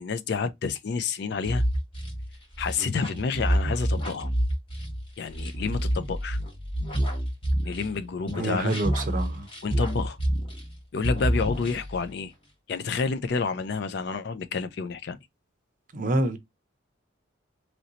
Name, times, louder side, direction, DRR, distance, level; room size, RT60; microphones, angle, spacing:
voice 1, 0.0-1.6 2.6-4.3 5.2-6.4 7.7-8.8 9.6-10.2 10.9-12.3 12.7-15.2, left 5 dB, 55° left, 0.4 m, -29 dB
sound 1, 1.4-8.0 8.3-10.8 11.0-12.1, equal, 25° left, 1.1 m, -28 dB
voice 2, 8.4-9.5 15.9-16.4, right 2 dB, 40° right, 0.5 m, -27 dB
3.1 x 2.6 x 2.7 m
head